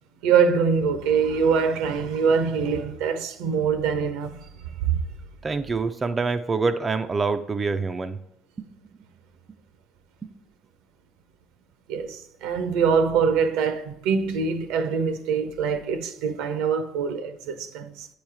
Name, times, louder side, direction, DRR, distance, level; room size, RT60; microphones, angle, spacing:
voice 1, 0.2-4.4 4.8-5.0 11.9-18.1, right 6 dB, 75° right, 0.6 m, -24 dB
voice 2, 5.4-8.2 8.6-8.7 10.2-10.3, right 4 dB, 30° right, 0.4 m, -26 dB
8.4 x 3.1 x 4.8 m
hypercardioid pair, 60°, 0 cm